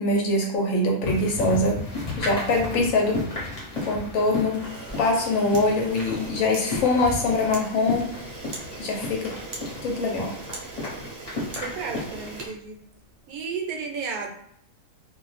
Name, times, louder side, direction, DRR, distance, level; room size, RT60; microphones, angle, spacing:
voice 1, 0.0-1.8 2.2-3.1 3.9-4.6 5.0-8.1 8.8-9.2 9.8-10.3, left 2 dB, 70° left, 0 dB, 0.9 m, -23 dB
sound 1, 1.0-12.5, left 2 dB, 35° left, 0.8 m, -34 dB
Camera, 4.5-13.2, right 3 dB, 55° right, 0.7 m, -41 dB
voice 2, 11.4-12.8 13.3-14.3, right 5 dB, 80° right, 2 dB, 1.0 m, -33 dB
2.5 x 2.2 x 3.1 m, 0.71 s
omnidirectional pair, 1.6 m